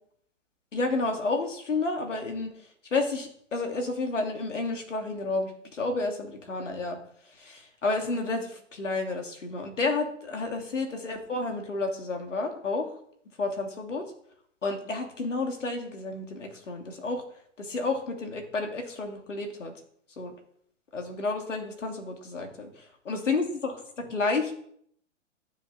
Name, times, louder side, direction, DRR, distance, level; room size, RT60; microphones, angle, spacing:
voice 1, 0.7-7.0 7.2-12.9 13.4-14.1 14.6-17.2 17.6-19.7 20.2-20.3 20.9-24.5, left 3 dB, 75° left, 4 dB, 3.0 m, -31 dB
12.5 x 7.2 x 5.6 m, 0.65 s
figure-of-eight pair, 115°, 38 cm